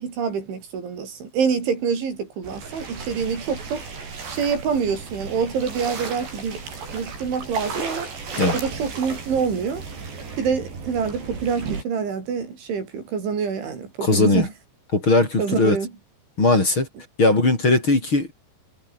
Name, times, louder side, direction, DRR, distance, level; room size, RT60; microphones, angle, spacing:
voice 1, 0.0-3.8 4.3-6.6 6.9-8.1 8.5-9.8 10.4-14.5 15.4-15.9, right 6 dB, 80° right, 8.0 m, -26 dB
sound 1, 2.4-11.8, right 4 dB, 65° right, 9.7 m, -34 dB
voice 2, 14.0-14.5 14.9-15.8 16.4-16.9 17.2-18.3, left 2 dB, 25° left, 5.8 m, -19 dB
omnidirectional pair, 5.3 m